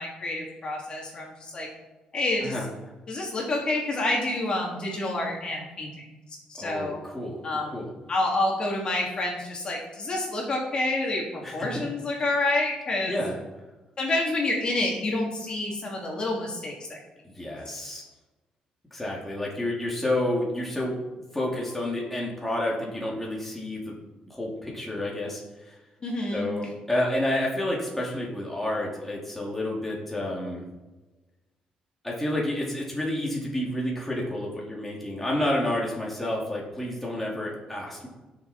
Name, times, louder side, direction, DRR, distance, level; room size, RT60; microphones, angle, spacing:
voice 1, 0.0-1.7 2.1-2.5 3.1-5.9 6.5-7.0 7.4-7.8 8.1-13.2 14.0-16.7 26.0-26.5, left 2 dB, 40° left, -2 dB, 3.0 m, -28 dB
voice 2, 6.6-7.4 7.7-7.9 11.4-11.7 13.1-13.4 17.2-18.0 18.9-21.0 21.3-23.9 24.3-25.8 26.3-30.7 32.0-38.1, left 1 dB, 5° left, -4 dB, 2.9 m, -30 dB
15.5 x 6.9 x 4.4 m, 1.2 s
cardioid pair, 110°, 2 cm